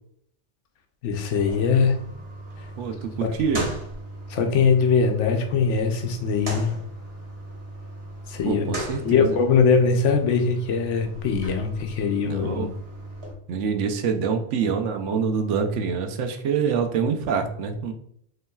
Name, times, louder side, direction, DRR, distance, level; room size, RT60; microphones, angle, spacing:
voice 1, 1.0-2.0 3.2-3.3 4.3-6.8 8.3-8.7 9.0-12.7, left 5 dB, 80° left, 4 dB, 1.0 m, -21 dB
sound 1, 1.3-13.3, right 1 dB, 60° right, 1.5 m, -37 dB
voice 2, 2.8-3.7 8.4-9.4 12.2-12.7 13.5-17.9, right 6 dB, 80° right, 6 dB, 0.9 m, -26 dB
5.4 x 3.1 x 2.3 m, 0.68 s
omnidirectional pair, 1.2 m